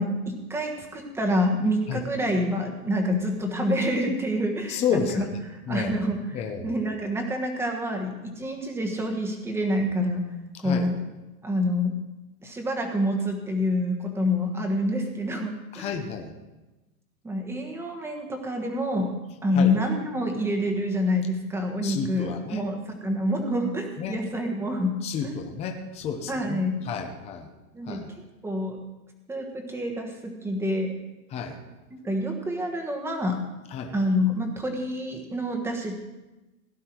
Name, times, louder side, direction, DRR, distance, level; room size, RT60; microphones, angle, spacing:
voice 1, 0.0-10.2 10.6-11.0 11.4-12.0 12.4-15.9 17.2-19.1 19.4-25.0 25.2-25.3 26.3-26.8 27.7-28.0 28.4-28.8 29.3-31.0 32.0-33.4 33.9-36.0, left 1 dB, 5° right, 3 dB, 1.3 m, -27 dB
voice 2, 4.7-5.4 5.7-5.9 6.3-6.8 10.6-10.9 15.7-16.3 19.5-19.7 21.8-22.6 24.0-24.2 25.0-27.5 27.9-28.1 31.3-31.6 33.7-33.9, left 7 dB, 15° left, 4 dB, 0.8 m, -31 dB
17.0 x 10.5 x 4.6 m, 1.1 s
supercardioid pair, 160°, 44 cm